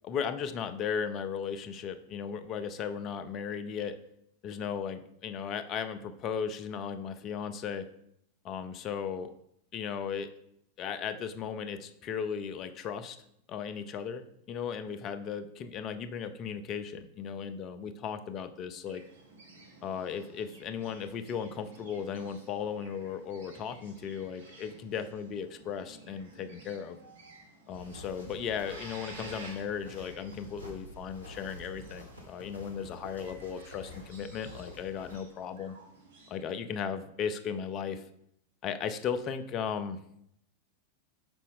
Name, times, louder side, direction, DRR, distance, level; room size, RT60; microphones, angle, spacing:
voice 1, 0.1-3.9 4.4-7.9 8.4-9.3 9.7-10.3 10.8-13.2 13.5-19.0 19.8-27.0 27.7-35.8 36.3-38.0 38.6-40.0, left 7 dB, 35° left, 11 dB, 0.5 m, -36 dB
sound 1, 18.9-36.3, right 2 dB, 65° right, 1.2 m, -53 dB
sound 2, 27.7-35.1, left 1 dB, 90° right, 1.2 m, -49 dB
5.4 x 5.0 x 3.7 m, 0.74 s
figure-of-eight pair, 90°, 0 cm